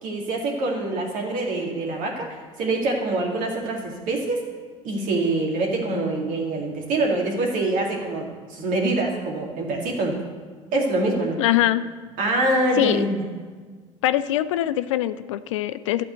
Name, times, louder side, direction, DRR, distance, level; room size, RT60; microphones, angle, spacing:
voice 1, 0.0-4.4 4.8-10.2 10.7-11.4 12.2-13.2, right 2 dB, 55° right, 0 dB, 2.2 m, -25 dB
voice 2, 11.4-11.8 12.8-13.1 14.0-16.0, left 13 dB, 70° left, 14 dB, 0.4 m, -22 dB
12.0 x 4.3 x 8.1 m, 1.5 s
figure-of-eight pair, 60°, 16 cm